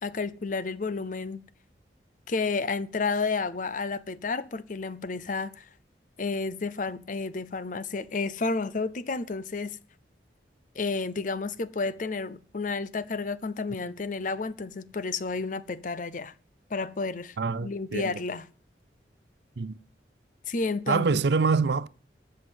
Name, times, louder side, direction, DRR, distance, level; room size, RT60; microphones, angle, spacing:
voice 1, 0.0-1.5 2.3-5.7 6.2-9.8 10.7-16.3 16.7-17.4 17.6-18.4 20.5-21.1, left 4 dB, 45° left, 0.6 m, -31 dB
voice 2, 17.4-18.2 19.6-19.8 20.9-21.9, right 4 dB, 70° right, 0.5 m, -25 dB
13.0 x 6.5 x 7.9 m
head